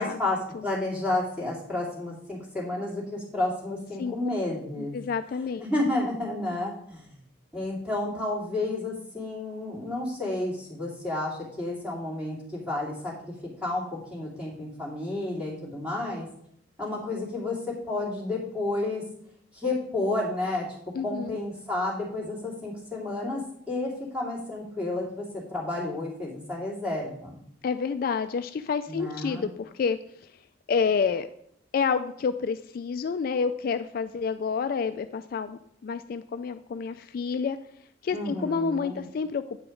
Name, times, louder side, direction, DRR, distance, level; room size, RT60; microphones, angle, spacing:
voice 1, 0.0-0.4 0.6-4.9 5.6-7.1 7.5-13.3 13.6-16.3 16.8-17.6 17.8-19.0 19.5-20.7 21.0-23.4 23.7-27.4 28.9-29.5 38.1-39.0, left 2 dB, 5° right, -5 dB, 2.5 m, -31 dB
voice 2, 4.8-5.7 20.9-21.4 27.6-30.3 30.7-31.3 31.7-37.6 38.0-39.6, left 5 dB, 50° left, 10 dB, 0.3 m, -29 dB
8.5 x 4.9 x 5.1 m, 0.70 s
head